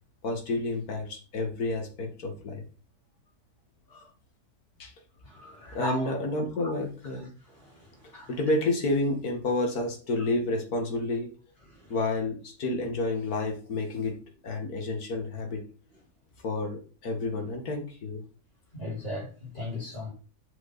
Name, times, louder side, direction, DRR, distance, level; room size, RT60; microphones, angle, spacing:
voice 1, 0.2-2.6 3.9-4.1 4.8-4.9 5.7-7.3 8.3-11.3 11.9-14.1 14.4-15.6 16.4-18.2, left 2 dB, 70° left, 2.3 m, -30 dB
voice 2, 5.2-6.1 7.5-8.3 11.7-11.9 18.7-20.1, left 1 dB, 40° left, 4.5 m, -37 dB
8.1 x 6.1 x 4.1 m
omnidirectional pair, 1.6 m